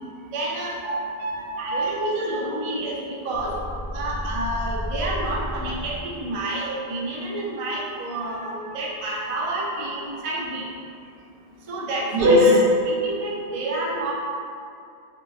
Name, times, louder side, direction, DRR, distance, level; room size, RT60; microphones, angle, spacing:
voice 1, 0.3-0.8 1.6-3.6 3.9-10.7 11.7-12.6 12.8-14.1, right 2 dB, 50° right, -4 dB, 0.4 m, -29 dB
voice 2, 0.8-2.3 8.2-8.5 12.1-12.5, left 1 dB, 70° right, -4 dB, 0.8 m, -22 dB
sound 1, 3.3-6.3, equal, 15° left, 0.5 m, -32 dB
3.7 x 2.4 x 2.3 m, 2.5 s
omnidirectional pair, 1.0 m